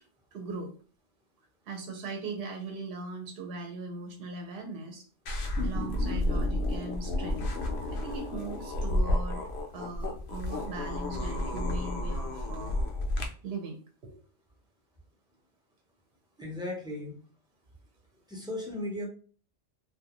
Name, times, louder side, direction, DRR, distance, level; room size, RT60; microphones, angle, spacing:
voice 1, 0.3-0.7 1.7-5.0 5.6-7.5 7.9-9.4 9.7-12.7 13.4-13.8 14.0-14.2, right 3 dB, 60° right, 2 dB, 0.8 m, -39 dB
sound 1, 5.3-13.3, left 1 dB, 70° left, 0.8 m, -31 dB
voice 2, 16.4-17.1 18.3-19.0, left 1 dB, 5° right, -2 dB, 0.5 m, -36 dB
2.4 x 2.3 x 2.8 m, 0.41 s
omnidirectional pair, 1.2 m